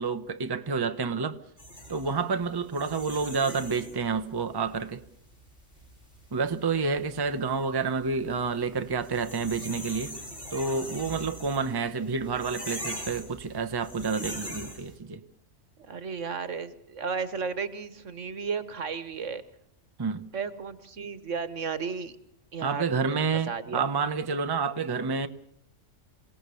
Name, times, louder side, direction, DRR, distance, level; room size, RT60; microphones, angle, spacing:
voice 1, 0.0-1.4 1.9-5.0 6.3-10.1 10.5-15.2 20.0-20.3 22.6-25.3, right 4 dB, 20° right, 0.8 m, -29 dB
sound 1, 1.6-15.0, equal, 45° left, 7.0 m, -42 dB
voice 2, 15.8-19.4 20.3-22.1 22.5-23.2 23.5-23.9, right 5 dB, 75° right, 1.6 m, -34 dB
27.0 x 18.0 x 6.9 m
omnidirectional pair, 1.3 m